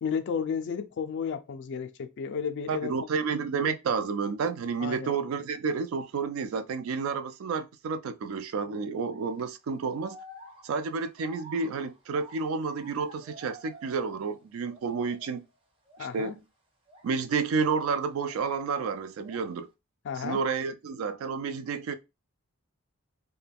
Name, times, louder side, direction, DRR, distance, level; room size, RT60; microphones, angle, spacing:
voice 1, 0.0-2.9 4.8-5.1 16.0-16.3 20.0-20.4, left 6 dB, 55° left, 0.3 m, -32 dB
voice 2, 2.7-10.2 10.6-15.4 16.0-16.4 17.0-19.7 20.2-21.9, right 5 dB, 70° right, 0.3 m, -30 dB
sound 1, 9.1-9.4 10.0-14.4 14.7-15.4 15.9-16.1 16.9-18.5 18.8-19.6, equal, 25° right, 0.5 m, -51 dB
2.2 x 2.1 x 3.3 m
head